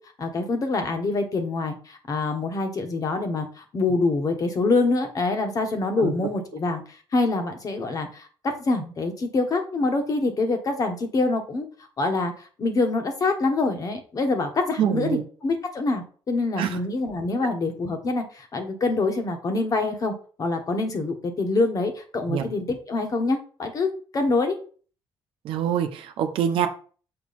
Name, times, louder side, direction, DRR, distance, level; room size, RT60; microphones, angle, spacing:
voice 1, 0.2-6.8 7.1-11.7 12.0-12.3 12.6-15.1 15.4-20.1 20.4-23.9 24.1-24.6, left 3 dB, 40° left, 5 dB, 1.5 m, -25 dB
voice 2, 14.8-15.2 16.6-16.8 22.3-22.5 25.4-26.7, right 9 dB, 75° right, 6 dB, 1.0 m, -25 dB
6.9 x 4.6 x 4.3 m, 0.41 s
cardioid pair, 110°, 9 cm